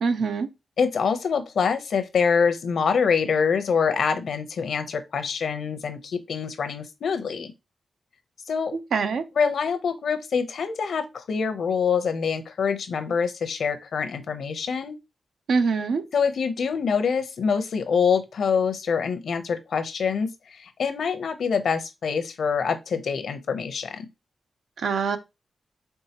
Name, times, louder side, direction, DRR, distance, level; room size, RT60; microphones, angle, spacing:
voice 1, 0.0-0.5 8.7-9.2 15.5-16.0 24.8-25.2, right 5 dB, 90° right, 0.6 m, -24 dB
voice 2, 0.8-7.5 8.5-8.8 9.4-14.9 16.1-24.1, left 6 dB, 80° left, 0.6 m, -25 dB
4.5 x 3.5 x 2.8 m
wide cardioid pair, 95°, 0 cm